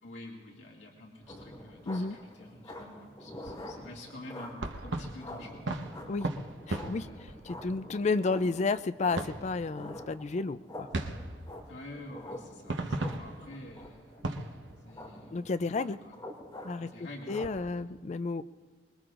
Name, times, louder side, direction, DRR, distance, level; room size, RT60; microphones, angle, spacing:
voice 1, 0.0-5.6 6.9-7.9 11.7-14.5 14.8-16.2 16.8-17.4, left 1 dB, 75° left, -2 dB, 2.2 m, -49 dB
sound 1, 1.2-2.3 3.4-3.9 4.5-8.3 9.1-10.2 10.5-10.6 10.9-15.4 15.9-16.0 17.0-17.1 17.4-17.7, right 2 dB, 80° right, 1.0 m, -39 dB
sound 2, 1.3-17.4, left 1 dB, 20° left, 2.4 m, -47 dB
voice 2, 6.7-7.1 7.4-10.9 15.3-16.0 16.6-16.9 17.3-18.4, left 3 dB, 40° left, 12 dB, 0.4 m, -31 dB
24.5 x 21.0 x 2.5 m, 1.4 s
head